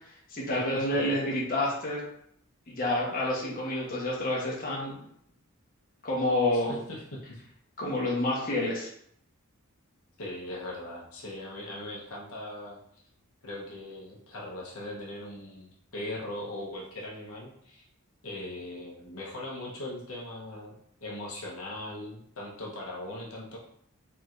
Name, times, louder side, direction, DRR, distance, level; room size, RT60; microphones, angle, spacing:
voice 1, 0.3-2.0 2.7-5.0 6.0-6.7 7.8-8.9, left 1 dB, 40° left, -5 dB, 1.1 m, -28 dB
voice 2, 6.5-7.4 10.2-12.8 13.4-17.8 18.2-23.6, left 1 dB, 75° left, -3 dB, 1.0 m, -40 dB
4.4 x 3.5 x 2.5 m, 0.69 s
head